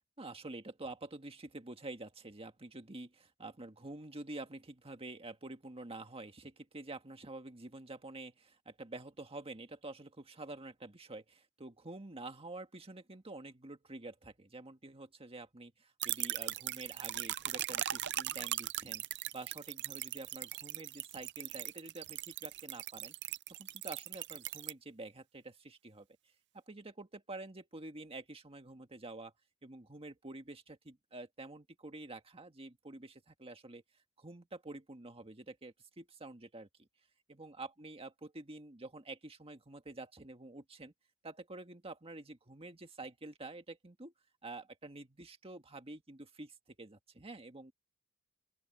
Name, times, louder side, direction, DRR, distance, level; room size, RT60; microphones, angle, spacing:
voice 1, 0.2-23.1 23.5-26.1 26.5-29.3 29.6-33.8 34.2-36.9 37.3-40.9 41.2-44.1 44.4-47.7, right 2 dB, 30° right, 1.7 m, -48 dB
sound 1, 16.0-24.7, right 14 dB, 55° right, 0.5 m, -39 dB
open air
head